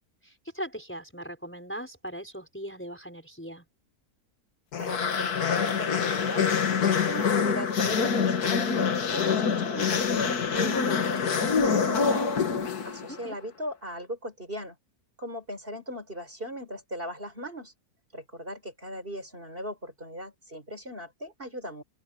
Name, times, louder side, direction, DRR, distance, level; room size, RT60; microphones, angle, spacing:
voice 1, 0.2-3.6 13.1-13.4, equal, 5° left, 5.7 m, -39 dB
Baby Zombie, 4.7-13.2, left 6 dB, 70° left, 2.0 m, -26 dB
voice 2, 4.8-6.5 6.8-8.7 9.1-10.8 11.1-12.4 12.8-14.8 15.2-17.7 18.1-21.8, equal, 35° right, 7.1 m, -38 dB
open air
omnidirectional pair, 1.7 m